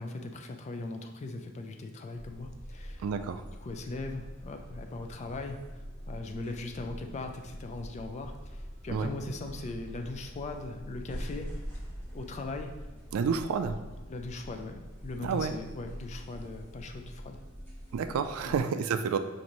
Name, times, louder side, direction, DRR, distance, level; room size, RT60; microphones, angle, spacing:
voice 1, 0.0-3.1 3.6-11.5 12.1-12.7 14.1-17.4 18.4-18.6, left 2 dB, 30° left, 5 dB, 0.3 m, -39 dB
sound 1, 2.2-18.6, equal, 10° left, 0.7 m, -44 dB
voice 2, 3.0-3.4 8.9-9.1 13.1-13.8 15.2-15.5 17.9-19.2, right 6 dB, 75° right, 10 dB, 0.3 m, -29 dB
5.1 x 2.6 x 2.9 m, 1.1 s
head